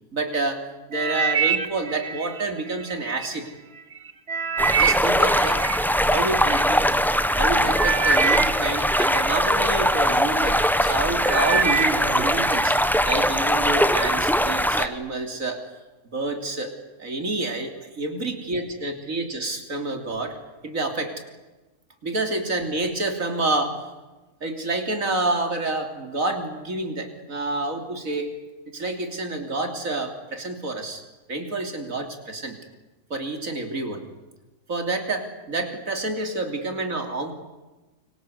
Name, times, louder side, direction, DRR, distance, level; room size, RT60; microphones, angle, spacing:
voice 1, 0.1-0.6 0.9-3.5 4.8-5.6 6.1-6.8 7.4-12.8 13.1-15.6 16.1-16.7 17.0-20.4 20.6-21.2 22.0-23.8 24.4-28.3 28.7-31.0 31.3-32.6 33.1-34.0 34.7-37.3, right 2 dB, 75° right, 5 dB, 3.6 m, -28 dB
sound 1, 0.9-3.3 3.8-6.6 7.3-7.5 7.7-10.1 10.6-10.9 11.2-12.7 13.1-13.5 14.2-14.3, right 6 dB, 45° right, 1.5 m, -26 dB
sound 2, 4.6-14.9, equal, ahead, 1.1 m, -21 dB
29.0 x 25.0 x 8.2 m, 1.1 s
omnidirectional pair, 1.4 m